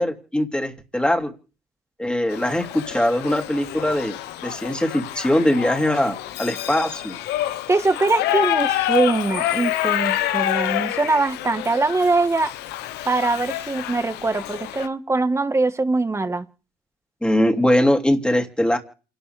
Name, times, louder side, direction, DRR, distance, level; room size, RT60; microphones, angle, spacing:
voice 1, 0.0-1.3 2.0-4.2 4.4-7.2 17.2-18.8, left 1 dB, 5° left, 2.6 m, -21 dB
Shout / Livestock farm animals working animals, 2.3-14.9, left 13 dB, 85° left, 0.9 m, -27 dB
voice 2, 7.7-12.5 13.0-16.4, right 3 dB, 15° right, 1.3 m, -22 dB
28.5 x 12.0 x 3.4 m
cardioid pair, 110°, 17 cm